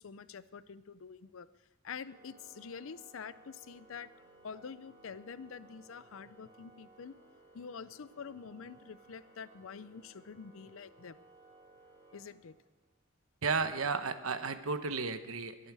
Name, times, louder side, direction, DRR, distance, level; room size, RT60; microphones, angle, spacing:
voice 1, 0.0-1.5 1.8-4.1 4.4-7.2 7.5-11.2 12.1-12.6, left 6 dB, 70° left, 16 dB, 0.5 m, -47 dB
Organ, 1.9-12.9, right 2 dB, 40° right, 3.8 m, -60 dB
voice 2, 13.4-15.7, right 4 dB, 85° right, 10 dB, 1.0 m, -33 dB
22.5 x 8.6 x 4.8 m, 1.0 s
head